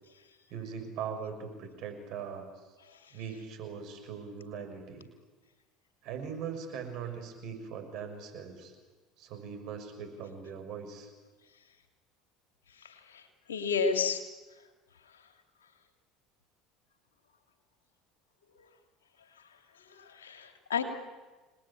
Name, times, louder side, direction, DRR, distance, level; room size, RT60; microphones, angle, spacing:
voice 1, 0.5-2.5 3.1-5.1 6.0-8.7 9.2-11.1, right 6 dB, 60° right, 6 dB, 6.2 m, -40 dB
voice 2, 13.5-14.2 20.0-20.8, left 5 dB, 85° left, 5 dB, 2.8 m, -30 dB
29.0 x 20.0 x 8.6 m, 1.3 s
hypercardioid pair, 70°, 0 cm